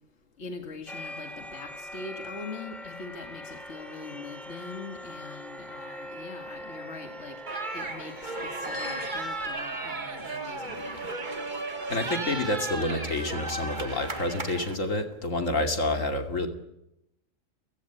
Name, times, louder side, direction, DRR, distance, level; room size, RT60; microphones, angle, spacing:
voice 1, 0.4-7.4 7.7-11.1, left 4 dB, 60° left, 5 dB, 2.3 m, -42 dB
sound 1, 0.9-9.3, left 1 dB, ahead, 2.5 m, -42 dB
sound 2, 7.5-14.8, right 2 dB, 35° right, 2.0 m, -35 dB
sound 3, 7.6-7.8 8.5-9.7 10.3-10.6 11.3-11.4 11.7-12.0 12.9-13.4, left 1 dB, 75° right, 5.4 m, -42 dB
voice 2, 11.9-16.5, left 2 dB, 75° left, 5 dB, 3.1 m, -28 dB
30.0 x 16.0 x 9.1 m, 0.86 s
omnidirectional pair, 1.3 m